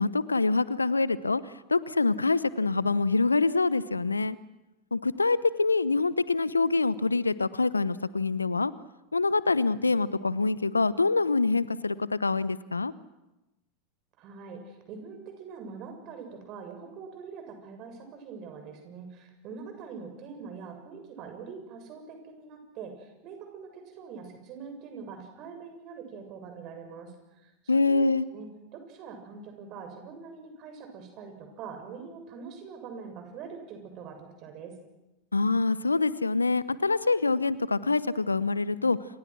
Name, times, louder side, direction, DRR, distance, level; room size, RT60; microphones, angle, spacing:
voice 1, 0.0-4.4 4.9-8.7 9.1-12.9 27.7-28.2 35.3-39.0, left 3 dB, 85° left, 18 dB, 0.9 m, -25 dB
voice 2, 14.2-28.1 28.3-34.7, right 5 dB, 45° right, 5 dB, 7.2 m, -44 dB
29.0 x 27.0 x 6.3 m, 0.99 s
figure-of-eight pair, 85°, 0 cm